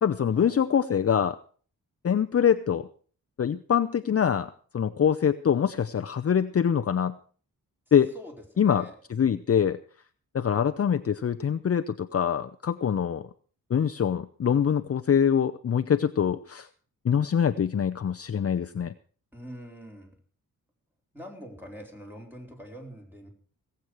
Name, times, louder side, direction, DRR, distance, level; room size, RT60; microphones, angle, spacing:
voice 1, 0.0-1.4 2.0-2.9 3.4-7.1 7.9-8.1 8.6-9.8 10.3-13.2 13.7-16.7 17.0-18.9, left 8 dB, 40° left, 9 dB, 0.7 m, -24 dB
voice 2, 8.1-9.0 19.3-20.2 21.1-23.3, equal, 5° right, 1 dB, 4.4 m, -44 dB
18.5 x 8.2 x 6.3 m, 0.43 s
wide cardioid pair, 100°, 35 cm